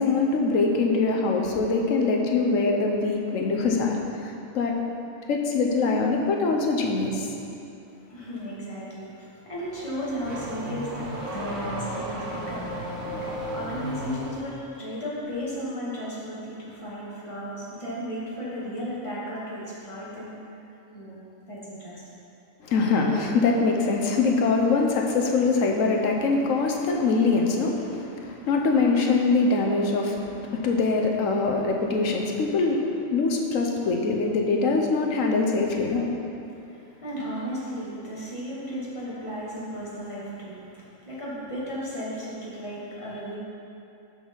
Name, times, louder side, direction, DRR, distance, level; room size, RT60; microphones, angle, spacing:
voice 1, 0.0-4.7 5.3-7.3 22.6-36.1, left 3 dB, 70° left, 1 dB, 1.2 m, -23 dB
voice 2, 8.0-20.6 20.9-21.2 21.5-22.0 36.6-43.4, equal, 25° left, -8 dB, 1.9 m, -35 dB
Car / Accelerating revving vroom, 9.5-14.5, right 1 dB, 80° right, 1.8 m, -34 dB
6.3 x 6.0 x 5.4 m, 2.8 s
omnidirectional pair, 1.4 m